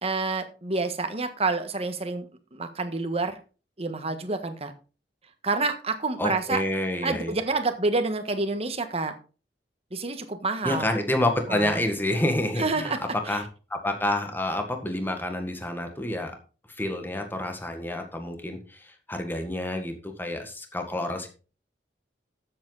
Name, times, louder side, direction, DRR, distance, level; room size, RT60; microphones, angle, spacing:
voice 1, 0.0-2.2 2.5-3.3 3.8-4.7 5.4-6.6 7.0-9.1 9.9-10.9 11.5-11.8 12.6-13.0 13.3-13.4, right 3 dB, 35° right, 8 dB, 1.5 m, -28 dB
voice 2, 6.2-7.4 10.6-13.4 13.7-16.3 16.8-21.3, left 1 dB, 10° left, 5 dB, 1.8 m, -28 dB
12.5 x 7.9 x 4.1 m, 0.35 s
head